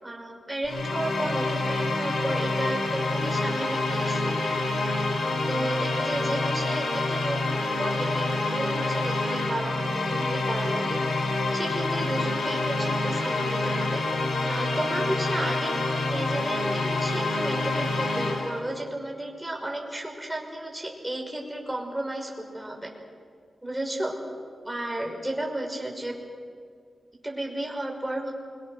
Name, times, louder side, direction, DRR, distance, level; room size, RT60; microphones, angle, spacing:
voice 1, 0.0-4.3 4.7-5.1 5.5-7.4 7.7-11.0 11.5-14.0 14.4-15.8 16.1-22.9 23.6-24.1 24.6-26.2 27.2-28.3, right 1 dB, 10° right, 0 dB, 5.8 m, -33 dB
sound 1, 0.6-18.6, left 2 dB, 85° left, 5.9 m, -27 dB
28.5 x 23.5 x 6.7 m, 2.1 s
wide cardioid pair, 85°, 0 cm